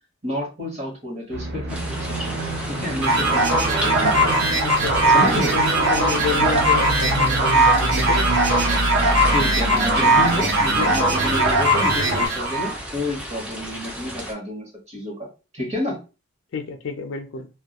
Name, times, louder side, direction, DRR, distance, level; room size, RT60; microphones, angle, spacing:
voice 1, 0.2-4.1 5.1-5.6 9.3-15.3 15.5-16.0, left 1 dB, 30° right, 0.9 m, -29 dB
Aircraft, 1.3-12.3, right 2 dB, 50° right, 0.6 m, -26 dB
sound 1, 1.7-14.3, equal, 5° right, 0.3 m, -35 dB
sound 2, 3.0-12.8, right 1 dB, 80° right, 0.8 m, -20 dB
voice 2, 4.6-8.3 9.1-9.3 16.5-17.5, left 5 dB, 65° left, 0.4 m, -30 dB
2.2 x 2.1 x 2.8 m
head